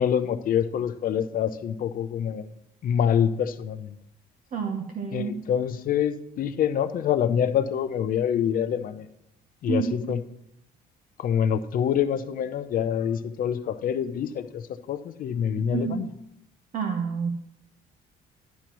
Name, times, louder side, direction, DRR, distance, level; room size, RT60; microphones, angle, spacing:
voice 1, 0.0-2.5 2.8-3.9 5.1-9.1 9.6-10.2 11.2-14.6 14.9-16.1, left 8 dB, 55° left, 11 dB, 0.7 m, -26 dB
voice 2, 4.5-5.4 9.7-10.2 15.6-16.0 16.7-17.4, right 5 dB, 50° right, 4 dB, 1.1 m, -29 dB
11.5 x 11.5 x 3.1 m, 0.79 s
cardioid pair, 110°, 17 cm